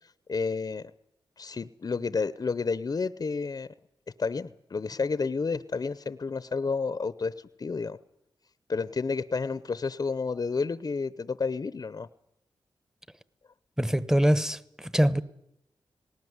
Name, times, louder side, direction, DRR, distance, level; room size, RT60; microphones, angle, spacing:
voice 1, 0.3-0.8 1.4-3.7 4.2-7.3 7.6-8.0 8.7-12.1, left 4 dB, 45° left, 0.7 m, -30 dB
voice 2, 13.8-15.2, equal, 5° right, 1.1 m, -24 dB
19.5 x 18.0 x 9.5 m
cardioid pair, 60°, 9 cm